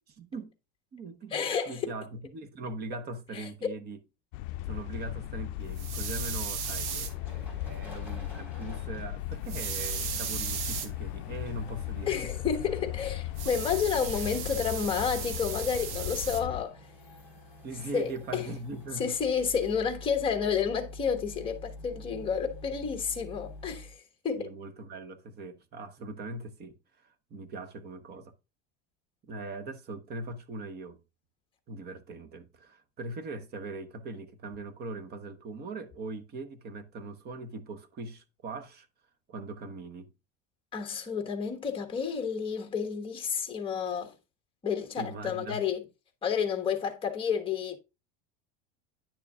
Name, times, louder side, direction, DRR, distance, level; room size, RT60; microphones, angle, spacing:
voice 1, 0.1-0.5 0.9-4.0 4.6-12.3 17.6-19.1 24.3-28.3 29.2-31.0 31.7-38.9 39.3-40.1 45.0-45.6, right 2 dB, 30° right, 0.9 m, -41 dB
voice 2, 1.3-1.8 3.3-3.5 12.1-16.8 17.9-18.5 19.0-24.5 40.7-44.1 44.6-45.8 46.2-47.8, left 7 dB, 15° left, 1.2 m, -30 dB
sound 1, 4.3-16.7, left 15 dB, 70° left, 0.5 m, -37 dB
sound 2, 5.8-7.1 9.5-10.9 13.4-16.4, right 9 dB, 80° right, 1.6 m, -36 dB
sound 3, 6.6-23.9, left 1 dB, 5° right, 3.9 m, -49 dB
10.0 x 6.7 x 2.3 m
cardioid pair, 165°, 34 cm